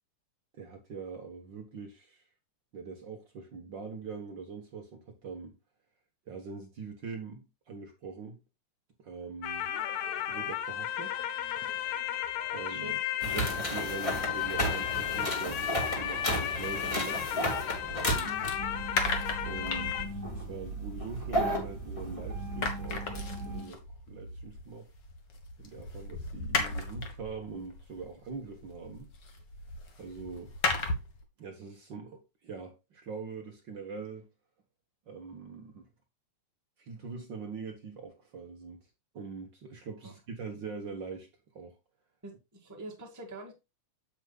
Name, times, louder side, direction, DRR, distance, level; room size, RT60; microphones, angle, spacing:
voice 1, 0.5-2.3 2.7-5.6 6.3-8.4 9.0-10.0 10.2-11.2 12.5-17.5 17.9-18.3 19.4-24.9 25.6-29.1 30.0-30.5 31.4-34.3 35.1-35.9 36.8-38.8 39.1-41.8, right 5 dB, 55° right, 1.4 m, -43 dB
sound 1, 9.4-20.1, left 11 dB, 75° left, 2.0 m, -34 dB
voice 2, 12.6-12.9 18.1-18.4 40.0-40.1 42.2-43.5, right 1 dB, 10° right, 1.4 m, -45 dB
sound 2, 13.2-23.7, equal, 15° left, 1.7 m, -34 dB
sound 3, 17.6-22.1 22.3-31.2, left 3 dB, 45° left, 1.7 m, -37 dB
8.7 x 7.8 x 2.3 m
omnidirectional pair, 3.5 m